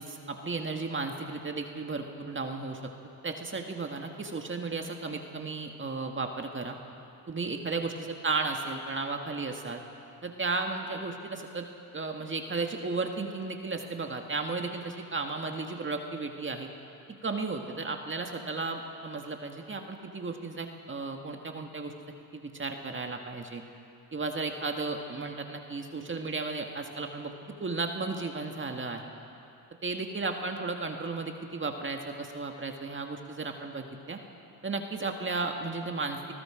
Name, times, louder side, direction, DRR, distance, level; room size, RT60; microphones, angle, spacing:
voice 1, 0.0-2.8 3.2-6.8 7.3-9.8 10.2-11.7 11.9-16.7 17.2-21.9 22.3-23.6 24.1-29.1 29.8-34.2 34.6-36.2, right 3 dB, 30° right, 3 dB, 1.9 m, -34 dB
27.0 x 20.0 x 5.1 m, 2.7 s
supercardioid pair, 75°, 41 cm